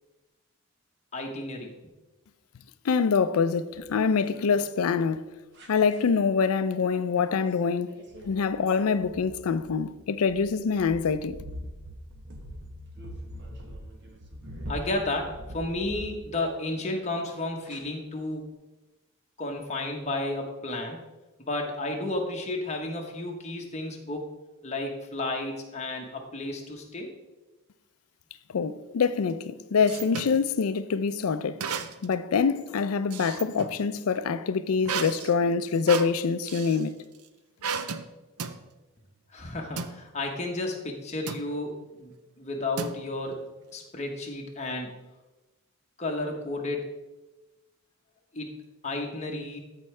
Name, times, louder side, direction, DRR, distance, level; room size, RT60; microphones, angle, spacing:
voice 1, 1.1-1.7 14.7-18.5 19.4-21.0 21.4-24.3 24.6-27.1 39.3-45.0 46.0-46.9 48.3-48.6 48.8-49.6, left 2 dB, 30° left, 1.1 m, -32 dB
voice 2, 2.8-5.4 5.7-8.0 8.2-11.4 28.5-31.7 32.0-37.0, left 5 dB, 75° left, 0.4 m, -25 dB
sound 1, 3.7-4.7 5.5-6.0 7.3-7.6 7.9-16.7 17.7-17.8, equal, 50° right, 1.2 m, -43 dB
sound 2, 29.3-30.4 31.6-32.2 32.6-33.8 34.8-36.9 37.6-38.1 38.4-38.6 39.8-40.0 41.3-41.5 42.8-43.3, right 6 dB, 85° right, 0.5 m, -34 dB
13.5 x 4.6 x 3.3 m
head